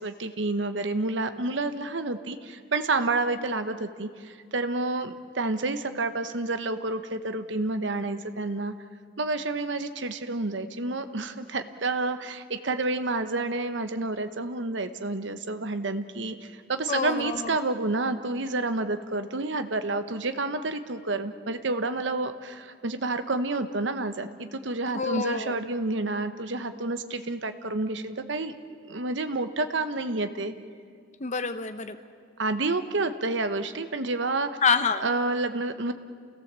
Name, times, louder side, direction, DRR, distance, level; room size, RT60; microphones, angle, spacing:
voice 1, 0.0-8.7 9.2-28.5 28.9-30.5 32.4-34.6 35.0-35.9, right 2 dB, 65° right, 9 dB, 1.0 m, -29 dB
voice 2, 16.9-17.6 24.9-25.5 31.2-32.0 34.6-35.0, left 5 dB, 40° left, 9 dB, 0.8 m, -26 dB
28.5 x 17.0 x 7.5 m, 2.1 s
head